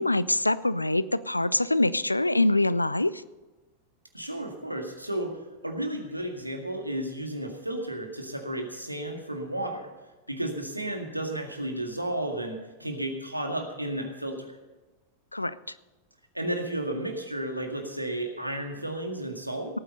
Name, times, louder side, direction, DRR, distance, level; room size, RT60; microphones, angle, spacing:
voice 1, 0.0-3.1 15.3-15.6, left 2 dB, 85° left, 18 dB, 0.4 m, -24 dB
voice 2, 4.1-9.9 10.3-14.6 16.3-19.8, right 1 dB, 85° right, 4 dB, 1.9 m, -33 dB
17.0 x 9.4 x 5.5 m, 1.2 s
figure-of-eight pair, 90°, 0 cm